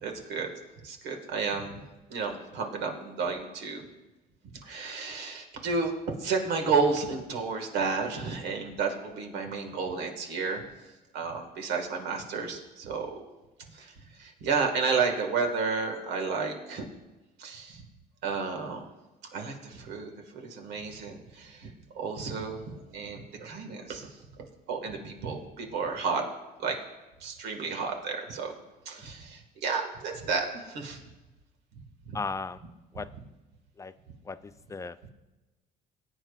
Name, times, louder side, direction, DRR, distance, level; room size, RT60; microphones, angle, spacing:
voice 1, 0.0-0.5 0.8-1.8 2.1-3.8 4.6-5.9 6.2-10.7 11.1-13.2 13.7-16.9 17.4-17.8 18.2-18.9 19.3-21.7 22.0-26.2 26.6-26.8 27.2-28.5 28.9-31.0 32.1-32.2, right 5 dB, 85° right, 3 dB, 1.9 m, -32 dB
voice 2, 32.1-32.6 32.9-33.1 33.8-33.9 34.2-35.1, left 4 dB, 20° left, 13 dB, 0.4 m, -36 dB
19.5 x 9.0 x 2.5 m, 1.1 s
cardioid pair, 110°, 17 cm